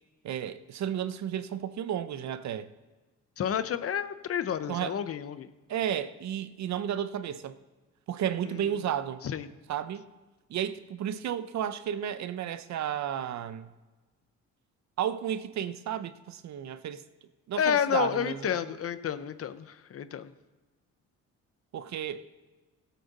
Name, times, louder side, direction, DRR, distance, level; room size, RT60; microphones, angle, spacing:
voice 1, 0.2-2.7 4.7-5.0 5.7-7.6 8.1-9.2 9.7-10.0 10.5-13.7 15.0-17.0 17.5-18.7 21.7-22.2, right 9 dB, 65° right, 0.7 m, -32 dB
voice 2, 3.4-5.5 9.2-9.5 17.6-20.3, left 8 dB, 50° left, 0.7 m, -30 dB
17.0 x 8.4 x 4.1 m
cardioid pair, 90°, 30 cm